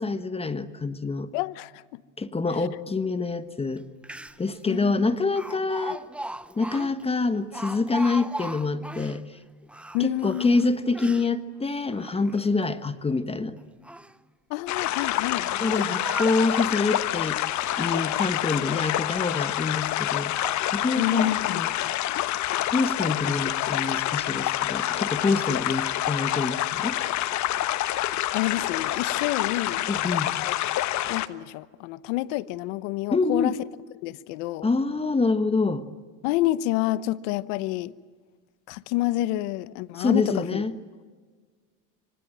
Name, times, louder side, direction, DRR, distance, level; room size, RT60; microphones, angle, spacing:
voice 1, 0.0-1.3 2.2-3.8 4.4-6.0 6.6-9.2 10.0-13.6 15.6-17.4 17.8-20.3 20.7-21.7 22.7-27.0 29.9-30.3 33.1-33.5 34.6-35.8 39.9-40.8, left 3 dB, 15° left, 1.3 m, -26 dB
voice 2, 1.3-2.0 4.7-5.1 9.9-10.6 14.5-15.6 21.0-21.6 28.3-30.1 30.4-30.5 31.1-33.5 34.0-34.7 36.2-37.9 38.7-40.6, left 16 dB, 80° left, 1.0 m, -28 dB
Speech, 3.8-3.9 4.0-4.6 5.4-9.2 9.7-11.3 11.9-12.7 13.6-14.2 14.9-16.9 17.4-18.2 18.6-19.1 19.7-19.8 20.3-20.7 21.1-21.4, right 1 dB, 5° right, 0.8 m, -39 dB
sound 1, 14.7-31.3, left 14 dB, 50° left, 1.2 m, -27 dB
25.5 x 25.5 x 9.0 m
supercardioid pair, 115°, 35 cm